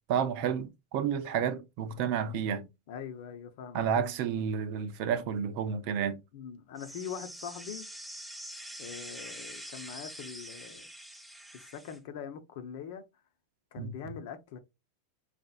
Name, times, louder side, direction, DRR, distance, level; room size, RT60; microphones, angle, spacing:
voice 1, 0.1-2.7 3.7-6.2 13.8-13.9, right 7 dB, 55° right, 0.6 m, -31 dB
voice 2, 2.9-4.0 6.3-7.9 8.8-10.9 11.5-13.0 13.7-14.6, left 8 dB, 65° left, 0.8 m, -42 dB
sound 1, 6.8-12.0, right 1 dB, 5° right, 0.5 m, -45 dB
4.3 x 2.5 x 2.4 m
hypercardioid pair, 110°, 0 cm